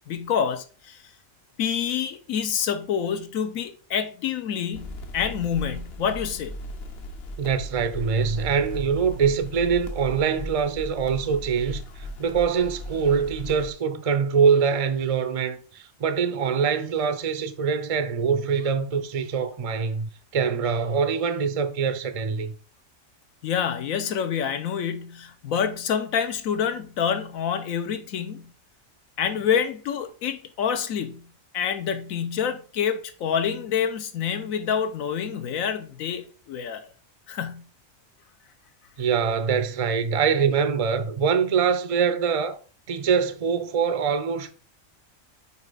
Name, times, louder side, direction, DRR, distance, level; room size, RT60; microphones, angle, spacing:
voice 1, 0.1-1.0 1.6-6.5 23.4-28.5 29.2-36.9 37.3-37.7, left 8 dB, 85° left, 1.2 m, -27 dB
sound 1, 4.7-13.7, left 1 dB, 55° left, 0.9 m, -37 dB
voice 2, 7.4-22.5 39.0-42.6 42.9-44.5, right 6 dB, 55° right, 0.4 m, -24 dB
5.7 x 4.3 x 3.9 m
omnidirectional pair, 1.4 m